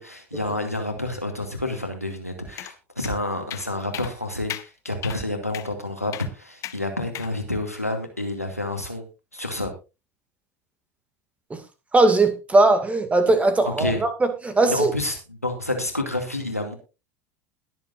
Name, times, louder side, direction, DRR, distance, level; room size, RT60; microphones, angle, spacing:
voice 1, 0.0-9.1 9.3-9.7 13.6-14.0 14.7-16.7, left 1 dB, 90° left, 2.3 m, -29 dB
sound 1, 2.6-2.7 3.0-3.1 3.5-3.7 3.9-4.1 4.5-4.7 5.0-5.2 5.5-5.7 6.1-6.3 6.6-6.8 7.1-7.3, left 13 dB, 40° left, 0.9 m, -35 dB
voice 2, 11.9-14.9, right 2 dB, 15° right, 2.2 m, -19 dB
21.0 x 7.5 x 2.6 m
figure-of-eight pair, 70°, 8 cm